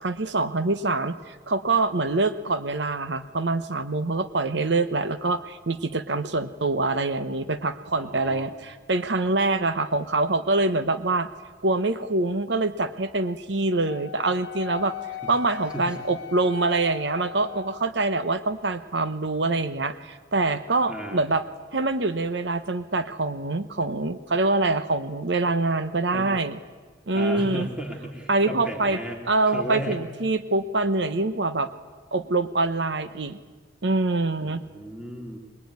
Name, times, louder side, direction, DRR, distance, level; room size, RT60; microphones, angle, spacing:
voice 1, 0.0-11.3 11.6-15.0 15.3-21.4 21.7-26.6 27.1-27.7 28.3-29.0 29.2-31.7 32.1-33.4 33.8-34.6, right 2 dB, 65° right, 12 dB, 1.0 m, -25 dB
voice 2, 8.0-8.4 15.7-16.0 20.9-21.2 26.1-26.3 27.1-29.2 29.5-30.0 34.4-35.4, equal, 5° right, 1 dB, 3.0 m, -34 dB
Wind instrument woodwind instrument, 13.9-18.0, left 9 dB, 75° left, 1.3 m, -38 dB
24.5 x 21.0 x 9.6 m, 1.4 s
head